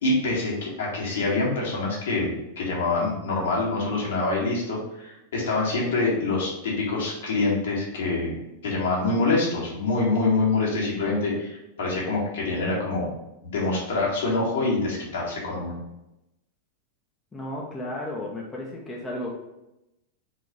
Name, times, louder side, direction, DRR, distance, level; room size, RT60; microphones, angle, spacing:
voice 1, 0.0-8.3 8.6-13.1 13.4-15.7, left 3 dB, 60° left, -4 dB, 2.1 m, -25 dB
voice 2, 17.3-19.4, left 1 dB, 15° left, -3 dB, 1.2 m, -33 dB
4.8 x 4.1 x 5.2 m, 0.90 s
figure-of-eight pair, 90°, 0 cm